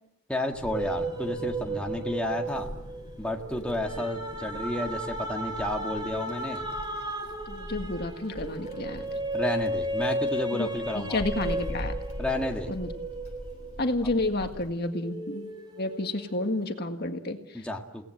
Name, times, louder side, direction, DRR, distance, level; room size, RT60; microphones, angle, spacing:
voice 1, 0.3-2.7 3.2-6.6 9.3-11.2 12.2-12.7 17.5-18.1, left 1 dB, 5° left, 1 dB, 1.7 m, -31 dB
Wind, 0.5-14.7, equal, 30° left, 2.8 m, -42 dB
sound 1, 0.7-14.5 14.9-16.5, right 1 dB, 20° right, 4.3 m, -35 dB
voice 2, 7.5-9.1 10.6-10.7 10.9-11.9 12.7-12.9 13.8-17.6, left 2 dB, 50° left, 5 dB, 1.8 m, -30 dB
29.5 x 18.5 x 7.7 m, 0.90 s
head